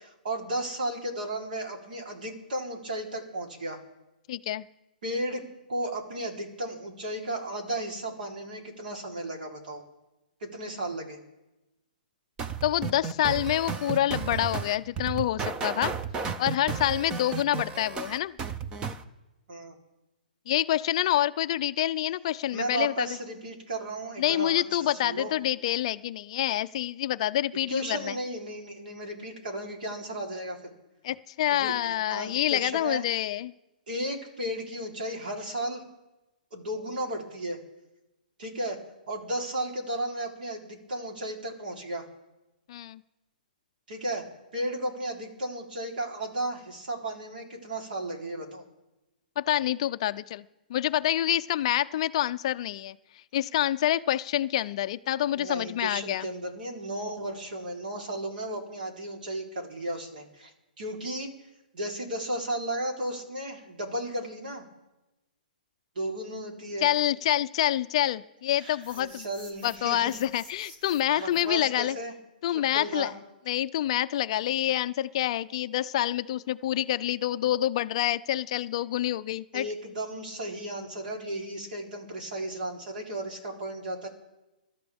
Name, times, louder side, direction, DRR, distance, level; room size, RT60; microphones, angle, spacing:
voice 1, 0.2-3.8 5.0-5.4 5.7-9.8 10.4-11.2 19.5-19.8 22.5-25.3 27.7-30.7 31.5-33.0 33.9-35.8 36.5-37.6 38.4-38.8 39.1-42.1 43.9-44.3 44.5-48.6 55.4-61.3 61.7-64.6 66.0-66.9 68.9-70.2 71.2-72.1 72.5-73.1 79.5-84.1, right 1 dB, 65° right, 1 dB, 3.6 m, -34 dB
voice 2, 4.3-4.6 12.6-15.9 16.4-18.3 20.5-23.1 24.2-28.2 31.0-33.5 42.7-43.0 49.4-50.4 50.7-53.0 53.3-56.3 66.8-69.3 69.6-72.0 72.4-73.1 73.5-79.7, left 13 dB, 40° left, 12 dB, 0.4 m, -27 dB
sound 1, 12.4-19.0, right 6 dB, 15° right, 0.6 m, -33 dB
sound 2, 68.6-71.6, right 1 dB, 85° right, 4.4 m, -49 dB
22.5 x 12.5 x 3.5 m, 1.0 s
hypercardioid pair, 160°, 5 cm